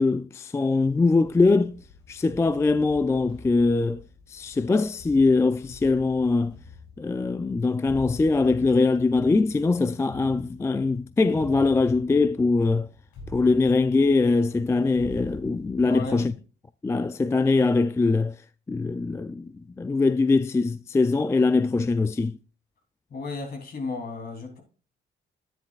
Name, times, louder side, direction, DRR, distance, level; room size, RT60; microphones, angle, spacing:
voice 1, 0.0-1.8 2.1-4.0 4.3-6.5 7.0-12.9 13.3-16.3 16.8-18.3 18.7-19.5 19.8-22.3, left 3 dB, 15° left, 0.3 m, -22 dB
sound 1, 1.2-16.3, left 3 dB, 90° left, 4.1 m, -46 dB
voice 2, 15.8-16.3 23.1-24.6, left 3 dB, 50° left, 3.2 m, -33 dB
10.5 x 10.0 x 2.4 m
cardioid pair, 90°, 20 cm